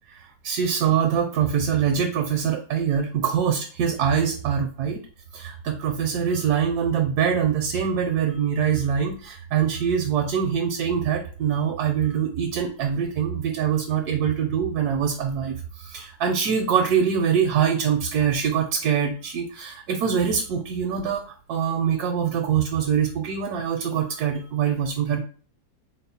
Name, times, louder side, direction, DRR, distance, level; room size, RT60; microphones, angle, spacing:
voice 1, 0.4-5.0 5.3-15.6 15.9-21.2 21.5-25.2, right 7 dB, 80° right, 3 dB, 1.1 m, -24 dB
3.8 x 2.0 x 4.2 m, 0.41 s
omnidirectional pair, 1.7 m